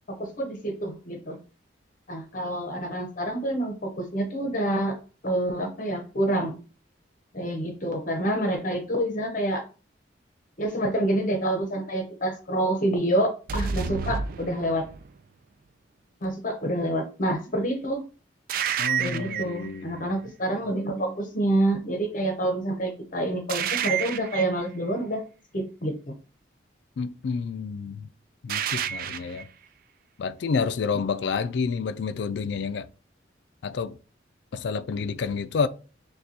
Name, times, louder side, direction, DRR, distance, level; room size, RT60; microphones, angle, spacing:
voice 1, 0.1-1.4 2.1-5.0 5.2-6.5 7.3-9.6 10.6-14.9 16.2-18.0 19.0-25.2 25.5-26.1, right 1 dB, 45° left, 0.9 m, -27 dB
sound 1, 13.5-15.1 18.5-19.7 23.5-24.6 28.5-29.4, right 8 dB, 50° right, 0.3 m, -29 dB
voice 2, 18.8-20.0 27.0-28.1 28.4-29.5 30.2-32.9 33.6-34.0 34.5-35.7, left 5 dB, 65° left, 0.4 m, -29 dB
6.5 x 2.3 x 2.8 m
head